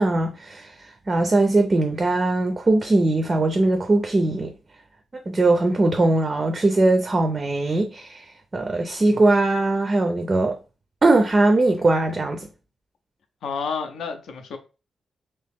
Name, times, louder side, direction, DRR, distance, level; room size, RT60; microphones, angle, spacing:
voice 1, 0.0-4.5 5.3-10.6 11.0-12.5, right 2 dB, 25° right, 0.4 m, -20 dB
voice 2, 13.4-14.6, left 5 dB, 80° left, 0.6 m, -30 dB
2.9 x 2.8 x 3.5 m
wide cardioid pair, 160°, 0 cm